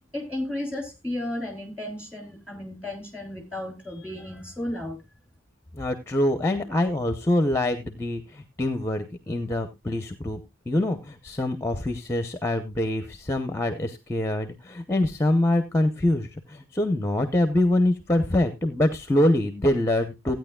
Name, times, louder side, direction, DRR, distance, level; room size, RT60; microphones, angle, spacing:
voice 1, 0.1-5.0, left 1 dB, 5° right, 3 dB, 3.0 m, -33 dB
voice 2, 5.7-10.4 10.7-20.3, left 1 dB, 15° left, 9 dB, 0.7 m, -25 dB
16.0 x 9.3 x 2.2 m, 0.22 s
head